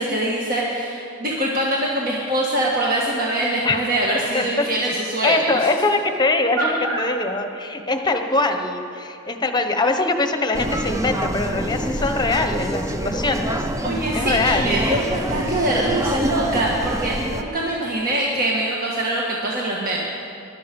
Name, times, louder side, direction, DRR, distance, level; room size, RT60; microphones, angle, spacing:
voice 1, 0.0-5.6 6.6-7.0 13.8-20.0, right 1 dB, 40° right, -3 dB, 1.7 m, -23 dB
voice 2, 4.3-4.7 5.2-13.6 14.1-14.8, left 2 dB, 20° left, 6 dB, 1.1 m, -22 dB
sound 1, 10.5-17.4, right 1 dB, 15° right, 0.7 m, -26 dB
22.5 x 12.0 x 5.4 m, 2.6 s
head